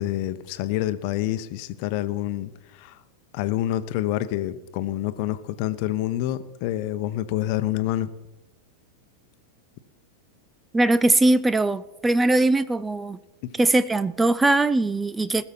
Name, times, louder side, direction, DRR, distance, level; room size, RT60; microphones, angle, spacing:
voice 1, 0.0-3.0 3.3-8.1 13.4-13.5, left 14 dB, 45° left, 12 dB, 0.8 m, -27 dB
voice 2, 10.7-13.2 13.5-15.4, right 2 dB, 10° right, 16 dB, 0.4 m, -21 dB
20.5 x 6.9 x 5.8 m, 1.0 s
figure-of-eight pair, 90°, 0 cm